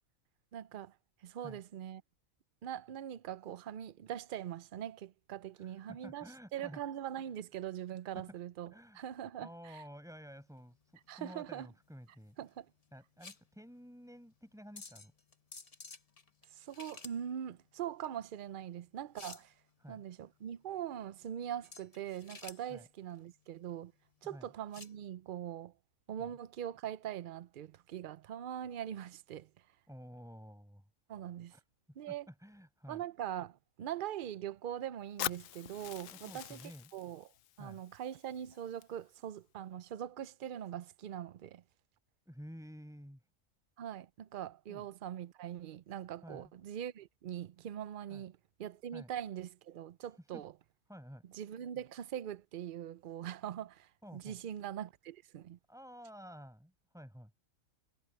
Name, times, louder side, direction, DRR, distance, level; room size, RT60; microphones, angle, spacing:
voice 1, 0.5-0.9 1.2-2.0 2.6-9.8 11.1-11.7 12.4-12.7 16.5-19.5 19.9-23.9 24.2-25.7 26.1-29.5 31.1-31.5 32.0-32.3 32.9-36.6 36.9-37.3 37.6-41.6 43.8-50.5 51.3-55.6, right 10 dB, 55° right, 0.6 m, -42 dB
voice 2, 5.5-6.8 8.1-8.2 8.7-9.0 9.3-10.8 11.1-12.4 12.9-15.1 19.8-20.0 22.7-22.9 24.2-24.5 26.2-26.3 29.9-30.8 31.5-31.6 32.1-33.0 36.1-36.9 37.6-37.8 42.3-43.2 44.7-44.9 46.2-46.4 48.1-48.2 48.9-49.1 50.2-50.4 50.9-51.2 54.0-54.4 55.7-57.3, equal, ahead, 5.3 m, -51 dB
sound 1, 10.3-25.0, left 4 dB, 30° left, 1.0 m, -55 dB
Fire, 35.2-39.2, left 13 dB, 80° left, 1.0 m, -44 dB
omnidirectional pair, 1.4 m